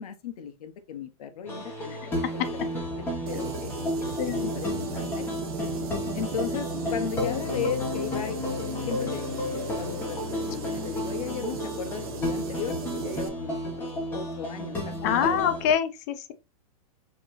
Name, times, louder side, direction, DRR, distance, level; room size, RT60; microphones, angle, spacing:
voice 1, 0.0-3.7 4.0-4.1 4.4-5.3 6.1-9.4 9.8-15.4, left 8 dB, 90° left, 1.0 m, -36 dB
sound 1, 1.5-15.7, left 1 dB, 10° left, 1.1 m, -32 dB
sound 2, 2.8-14.1, left 6 dB, 25° right, 1.1 m, -44 dB
sound 3, 3.3-13.3, right 7 dB, 80° right, 1.1 m, -38 dB
voice 2, 4.2-4.8 15.0-16.3, left 9 dB, 30° left, 0.4 m, -26 dB
5.1 x 3.0 x 2.6 m
supercardioid pair, 180°, 18 cm